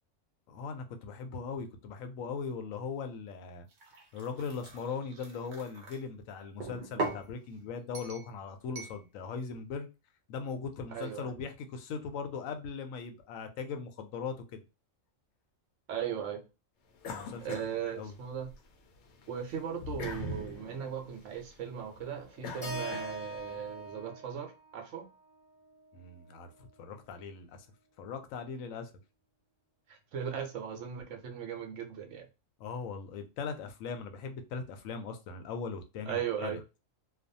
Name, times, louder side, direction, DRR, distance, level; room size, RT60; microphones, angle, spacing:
voice 1, 0.5-3.7 4.1-9.9 10.3-14.6 17.0-17.6 17.9-18.1 25.9-27.7 28.0-28.9 32.6-36.6, left 5 dB, 90° left, 1.0 m, -39 dB
sound 1, 3.7-6.0 6.6-7.3 7.9-8.3 8.7-9.0, right 2 dB, 50° right, 0.6 m, -39 dB
voice 2, 10.9-11.3 15.9-16.4 17.4-18.5 19.3-25.1 29.9-32.2 36.1-36.6, right 8 dB, 70° right, 1.0 m, -38 dB
sound 2, 17.0-18.6 19.0-23.5, left 2 dB, 70° left, 0.8 m, -43 dB
Keyboard (musical), 22.6-26.8, right 1 dB, 35° left, 0.9 m, -44 dB
2.5 x 2.3 x 2.6 m
omnidirectional pair, 1.3 m